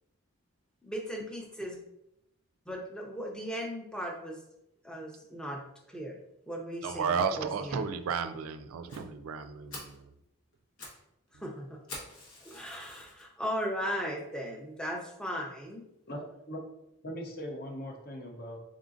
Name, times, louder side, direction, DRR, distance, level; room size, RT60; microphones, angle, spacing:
voice 1, 0.8-1.8 2.7-4.4 4.8-5.6 5.9-6.2 6.5-7.9 11.4-11.8 12.4-15.9, equal, 5° left, 0 dB, 0.5 m, -37 dB
voice 2, 6.8-10.1, right 6 dB, 80° right, 10 dB, 0.3 m, -33 dB
Fire, 8.9-9.0 9.4-9.5 9.7-10.0 10.5-11.0 11.3-11.4 11.9-13.2 13.8-13.9 14.5-14.6 14.8-14.9 15.3-15.4, left 2 dB, 85° left, 1.2 m, -45 dB
voice 3, 16.1-16.6 17.0-18.6, equal, 45° left, 2 dB, 0.7 m, -40 dB
3.8 x 3.7 x 2.5 m, 0.82 s
head